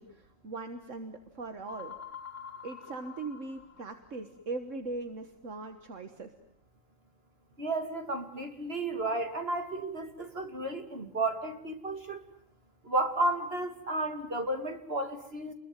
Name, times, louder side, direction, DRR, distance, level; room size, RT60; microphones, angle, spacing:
voice 1, 0.0-2.0 2.6-6.3, right 3 dB, 75° right, 8 dB, 1.9 m, -40 dB
sound 1, 1.7-4.3, left 7 dB, 70° left, 2.5 m, -46 dB
voice 2, 7.6-12.2 12.8-15.5, right 2 dB, 50° right, 6 dB, 2.9 m, -32 dB
30.0 x 21.5 x 9.1 m, 0.70 s
omnidirectional pair, 1.3 m